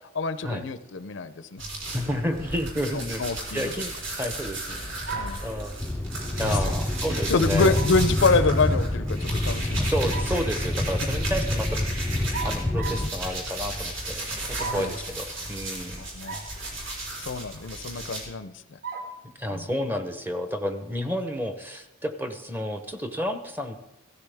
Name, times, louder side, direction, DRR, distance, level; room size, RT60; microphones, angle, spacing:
voice 1, 0.1-1.6 2.9-3.7 5.1-5.4 6.4-6.8 7.3-9.9 14.6-14.9 16.0-16.4 17.2-18.5 19.4-19.7, left 4 dB, 65° left, 12 dB, 0.5 m, -26 dB
sound 1, 1.6-12.5 12.8-18.2, right 2 dB, 70° right, 4.2 m, -35 dB
voice 2, 1.9-3.2 3.5-5.1 5.4-5.8 6.4-7.8 9.7-11.8 12.1-16.0 19.4-23.8, equal, 10° right, 8 dB, 0.7 m, -31 dB
sound 2, 5.1-5.5 7.7-8.0 9.8-10.4 12.3-13.1 14.6-15.0 16.2-16.5 17.0-17.1 18.8-19.2, right 4 dB, 50° right, 1.2 m, -35 dB
sound 3, 5.8-13.1, left 1 dB, 10° left, 0.3 m, -27 dB
16.0 x 13.5 x 3.5 m, 0.98 s
head